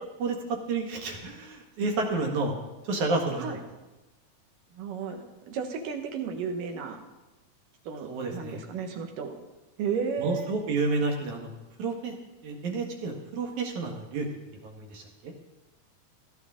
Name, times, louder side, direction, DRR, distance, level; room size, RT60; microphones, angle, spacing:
voice 1, 0.2-2.6 2.8-3.4 8.1-8.6 10.2-11.5 11.8-12.2 12.4-14.3 14.6-15.3, right 3 dB, 65° right, 2 dB, 2.9 m, -30 dB
voice 2, 4.7-7.0 7.8-9.3 9.8-10.6, right 6 dB, 85° right, 4 dB, 3.0 m, -33 dB
17.5 x 13.5 x 3.7 m, 1.1 s
omnidirectional pair, 3.7 m